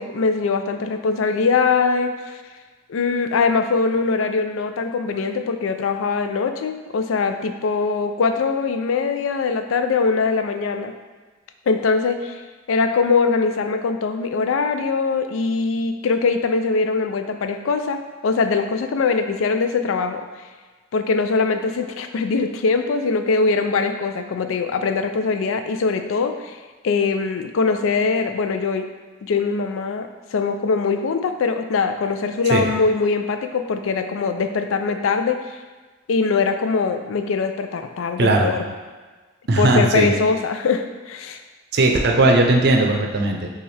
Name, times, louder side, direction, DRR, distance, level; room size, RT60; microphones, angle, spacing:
voice 1, 0.0-2.4 2.9-10.9 11.7-12.4 12.7-20.3 20.9-26.6 26.8-28.8 29.2-35.6 36.1-38.6 39.6-41.4, left 4 dB, 90° left, 7 dB, 0.4 m, -22 dB
voice 2, 38.2-38.5 39.5-40.1 41.7-43.5, right 2 dB, 55° right, 2 dB, 0.5 m, -17 dB
6.8 x 2.4 x 3.2 m, 1.3 s
head